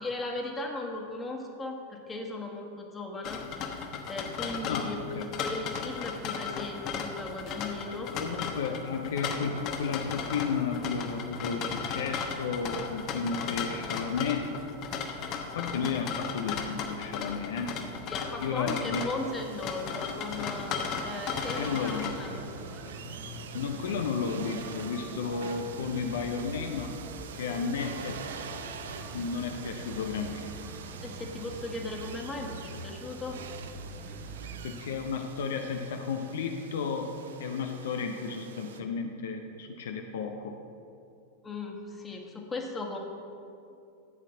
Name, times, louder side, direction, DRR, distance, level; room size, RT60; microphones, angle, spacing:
voice 1, 0.0-5.0 5.4-8.1 18.1-20.7 21.0-22.4 31.0-33.4 41.4-43.0, left 3 dB, 15° left, 0 dB, 1.6 m, -37 dB
sound 1, 3.2-22.4, left 6 dB, 35° left, 1.1 m, -36 dB
voice 2, 4.7-5.3 8.2-14.5 15.6-17.8 18.4-19.1 21.6-22.4 23.5-27.0 27.3-28.2 29.1-30.5 34.6-37.1 37.4-40.6, left 5 dB, 60° left, 4 dB, 0.7 m, -33 dB
sound 2, 19.2-38.8, right 7 dB, 60° right, 0.7 m, -45 dB
sound 3, 22.0-34.7, right 2 dB, 30° right, 1.7 m, -44 dB
14.5 x 9.2 x 4.0 m, 2.6 s
figure-of-eight pair, 90°, 0 cm